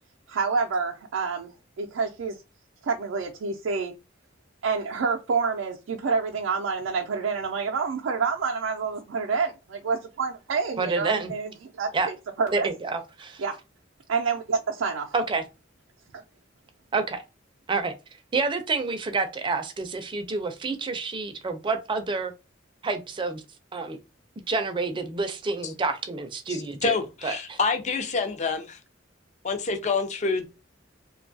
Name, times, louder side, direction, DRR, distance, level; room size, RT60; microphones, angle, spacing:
voice 1, 0.3-2.4 2.8-3.9 4.6-11.5 11.8-12.7 13.4-13.6 14.1-15.1, right 5 dB, 90° right, 0.4 m, -28 dB
voice 2, 10.8-11.3 11.9-12.1 12.5-13.4 15.1-15.4 16.9-17.2 17.7-17.9 18.3-22.3 22.8-23.4 23.7-24.0 24.5-26.9 27.2-27.6, right 3 dB, 25° right, 0.4 m, -28 dB
voice 3, 26.8-28.8 29.4-30.5, left 4 dB, 40° left, 0.4 m, -27 dB
2.6 x 2.3 x 2.6 m
head